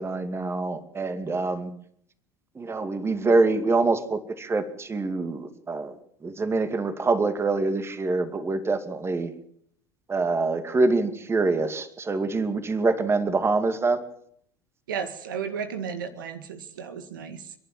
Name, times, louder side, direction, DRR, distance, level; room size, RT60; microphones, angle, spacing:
voice 1, 0.0-1.7 2.6-5.9 6.2-9.3 10.1-14.0, right 3 dB, 25° right, 10 dB, 2.5 m, -25 dB
voice 2, 14.9-17.5, right 6 dB, 80° right, 9 dB, 2.0 m, -34 dB
30.0 x 11.0 x 7.9 m, 0.67 s
hypercardioid pair, 70°, 11 cm